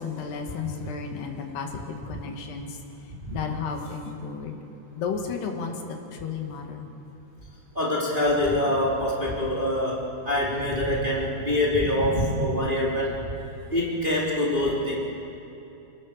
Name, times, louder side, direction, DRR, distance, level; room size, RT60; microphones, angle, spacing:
voice 1, 0.0-4.6 5.0-6.9, left 5 dB, 80° left, 3 dB, 3.9 m, -33 dB
voice 2, 7.7-13.2 13.7-15.0, left 1 dB, 15° right, -5 dB, 3.0 m, -25 dB
28.0 x 18.5 x 6.7 m, 3.0 s
omnidirectional pair, 4.7 m